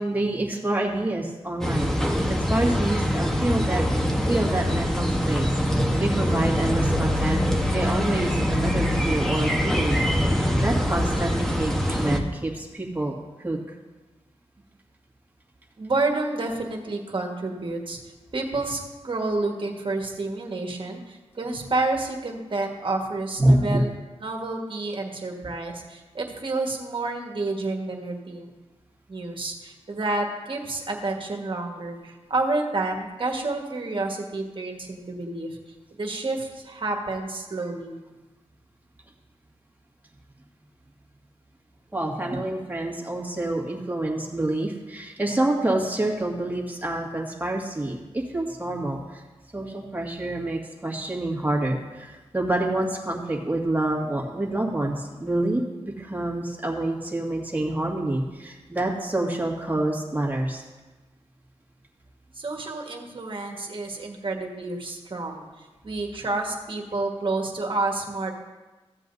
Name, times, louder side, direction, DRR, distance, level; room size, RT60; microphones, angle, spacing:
voice 1, 0.0-3.9 4.3-10.1 10.3-13.6 23.4-23.8 41.9-49.2 49.5-55.6 56.0-60.6, right 1 dB, 15° right, -2 dB, 1.9 m, -27 dB
sound 1, 1.6-12.2, equal, 5° left, 1.1 m, -24 dB
voice 2, 15.8-18.0 18.3-23.9 24.2-28.5 29.1-35.6 36.0-38.0 62.3-68.3, right 2 dB, 50° right, 0 dB, 1.5 m, -29 dB
15.0 x 7.5 x 2.7 m, 1.2 s
cardioid pair, 65°, 11 cm